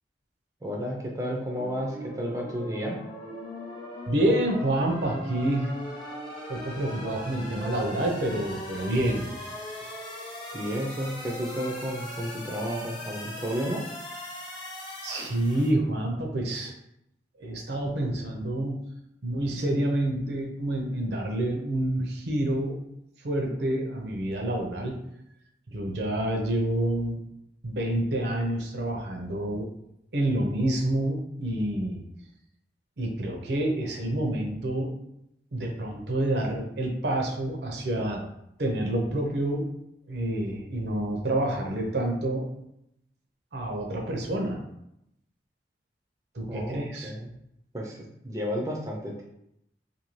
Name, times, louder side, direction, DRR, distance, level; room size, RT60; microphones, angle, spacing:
voice 1, 0.6-3.0 10.5-13.8 46.5-47.3 47.7-49.2, equal, 20° right, -2 dB, 0.4 m, -32 dB
sound 1, 1.6-15.7, left 1 dB, 25° left, 0.6 m, -39 dB
voice 2, 4.1-5.7 6.5-9.2 15.0-16.7 17.4-18.8 19.2-22.8 23.2-25.0 25.7-27.2 27.6-29.7 30.1-32.0 33.0-34.9 35.5-38.2 38.6-39.7 40.1-42.5 43.5-44.6 46.3-47.1, right 1 dB, 70° right, 1 dB, 0.6 m, -28 dB
2.6 x 2.6 x 3.0 m, 0.78 s
head